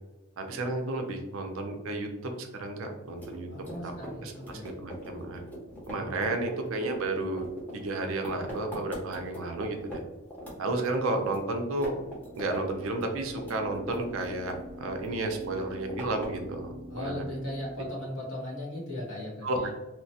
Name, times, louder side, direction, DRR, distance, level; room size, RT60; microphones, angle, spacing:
voice 1, 0.4-2.1 2.4-3.9 4.2-4.3 4.6-5.4 5.9-7.5 7.7-10.0 10.6-11.9 12.3-17.1 19.4-19.7, right 2 dB, 65° right, 4 dB, 0.5 m, -32 dB
sound 1, 3.1-10.0 10.3-11.4 11.7-12.6 12.9-14.8 15.0-16.5, equal, 10° left, 0.7 m, -42 dB
voice 2, 3.5-4.7 6.0-6.1 6.4-6.6 16.9-19.7, left 1 dB, 70° left, -6 dB, 1.2 m, -38 dB
sound 2, 12.0-17.9, equal, 45° left, 1.3 m, -46 dB
3.0 x 2.1 x 2.7 m, 1.1 s
head